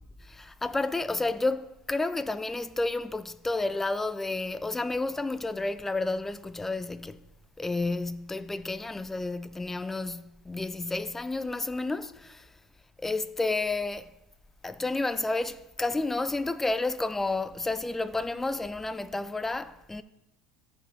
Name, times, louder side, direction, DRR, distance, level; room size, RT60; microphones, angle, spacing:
voice 1, 0.3-7.2 7.6-12.5 13.0-14.1 14.6-20.0, left 2 dB, 10° left, 0.4 m, -31 dB
14.0 x 4.9 x 3.4 m
supercardioid pair, 105°, 3 cm